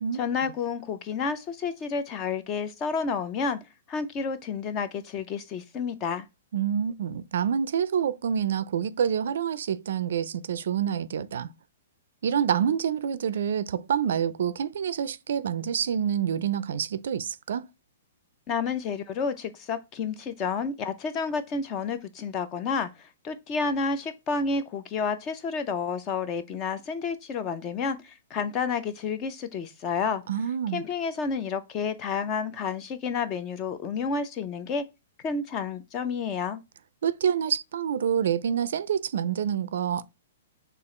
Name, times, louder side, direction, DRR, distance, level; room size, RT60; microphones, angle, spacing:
voice 1, 0.2-3.6 3.9-6.2 18.5-30.2 30.7-34.9 35.2-36.6, left 5 dB, 20° left, 0.4 m, -30 dB
voice 2, 6.5-11.5 12.2-17.7 30.3-30.8 37.0-40.0, right 8 dB, 60° right, 0.4 m, -27 dB
6.6 x 2.4 x 3.1 m
hypercardioid pair, 180°, 0 cm